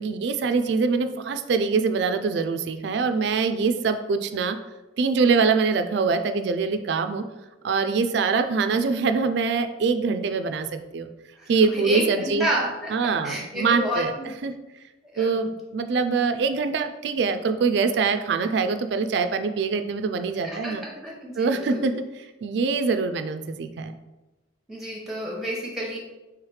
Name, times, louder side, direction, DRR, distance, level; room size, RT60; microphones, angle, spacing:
voice 1, 0.0-4.6 5.0-7.2 7.6-11.1 11.5-12.5 12.9-14.1 14.4-14.5 15.2-20.8 21.4-22.0 22.4-23.9, right 4 dB, 60° right, 9 dB, 0.3 m, -24 dB
voice 2, 11.4-14.3 15.1-15.4 20.4-21.8 24.7-26.0, equal, ahead, -2 dB, 0.9 m, -30 dB
3.4 x 3.2 x 4.7 m, 1.1 s
head